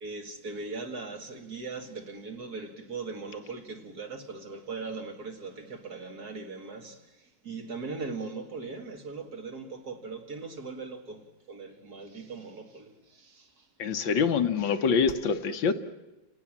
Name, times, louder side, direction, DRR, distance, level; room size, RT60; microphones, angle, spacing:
voice 1, 0.0-13.7, right 4 dB, 50° right, 2.3 m, -40 dB
voice 2, 13.8-15.7, left 6 dB, 70° left, 1.8 m, -25 dB
30.0 x 18.0 x 7.4 m
omnidirectional pair, 2.2 m